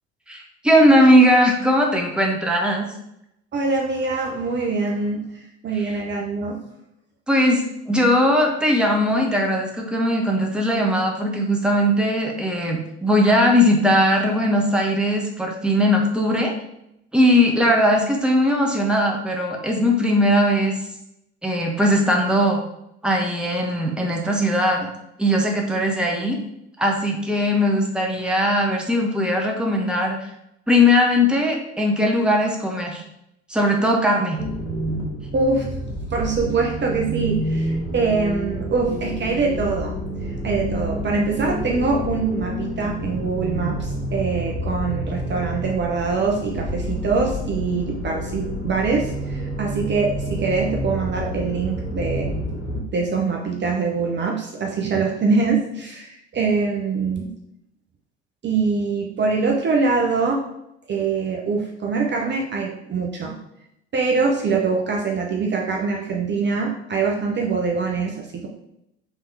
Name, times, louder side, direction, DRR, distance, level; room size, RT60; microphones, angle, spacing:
voice 1, 0.3-2.9 5.8-5.9 7.3-16.5 17.1-20.7 21.4-22.6 23.0-24.9 25.2-26.4 26.8-30.2 30.7-33.0 33.5-34.4, equal, 5° right, 0 dB, 1.4 m, -19 dB
voice 2, 3.5-5.3 5.6-6.6 35.3-39.9 40.4-57.3 58.4-60.4 60.9-63.4 63.9-68.5, right 4 dB, 35° right, 0 dB, 1.2 m, -24 dB
sound 1, 34.4-52.8, equal, 50° left, 2.4 m, -28 dB
5.6 x 3.7 x 4.7 m, 0.81 s
figure-of-eight pair, 60°, 32 cm